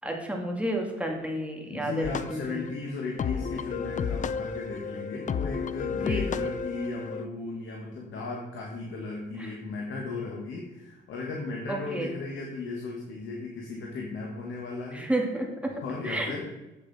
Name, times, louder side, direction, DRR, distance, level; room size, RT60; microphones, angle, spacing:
voice 1, 0.0-2.6 5.9-6.4 9.4-9.5 11.7-12.1 14.9-15.7 16.0-16.4, right 1 dB, 5° right, 1 dB, 2.0 m, -31 dB
voice 2, 1.6-15.1 15.8-16.4, left 3 dB, 75° left, -1 dB, 1.6 m, -36 dB
sound 1, 2.0-7.2, left 6 dB, 40° left, 0.5 m, -32 dB
8.1 x 7.0 x 4.2 m, 1.1 s
cardioid pair, 90°, 20 cm